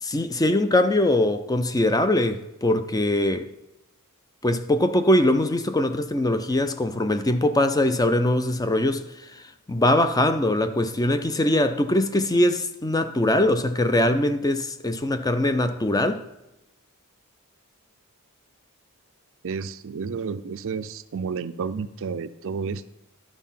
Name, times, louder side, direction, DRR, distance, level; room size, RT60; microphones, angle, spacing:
voice 1, 0.0-3.5 4.4-16.2, left 1 dB, 15° left, 0.5 m, -22 dB
voice 2, 19.4-22.9, right 5 dB, 60° right, 0.5 m, -31 dB
11.5 x 4.6 x 5.7 m
head